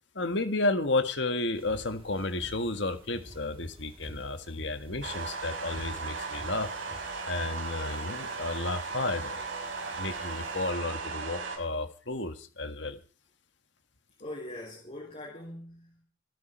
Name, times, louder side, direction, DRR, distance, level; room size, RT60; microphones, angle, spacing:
voice 1, 0.2-6.7 7.3-9.4 9.9-13.0, left 2 dB, 65° left, 1.8 m, -32 dB
sound 1, 1.5-10.7, equal, 30° right, 2.3 m, -51 dB
sound 2, 5.0-11.6, right 4 dB, 75° right, 5.6 m, -37 dB
voice 2, 14.2-16.0, left 1 dB, 35° left, 3.7 m, -42 dB
25.5 x 9.6 x 4.6 m
head